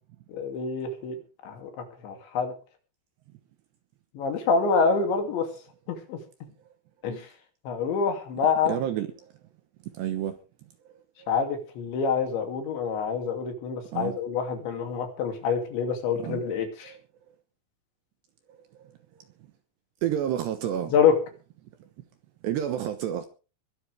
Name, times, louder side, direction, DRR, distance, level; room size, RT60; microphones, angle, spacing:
voice 1, 0.3-1.2 1.4-1.7 2.0-2.5 4.1-5.5 5.9-6.2 7.0-7.3 7.7-8.8 11.3-16.9 20.9-21.2, left 5 dB, 65° left, 4.7 m, -26 dB
voice 2, 8.7-9.1 9.9-10.4 11.2-11.3 13.9-14.2 16.2-16.4 16.8-17.0 20.0-20.9 22.4-23.3, right 10 dB, 70° right, 2.8 m, -29 dB
22.5 x 12.0 x 3.5 m
omnidirectional pair, 6.0 m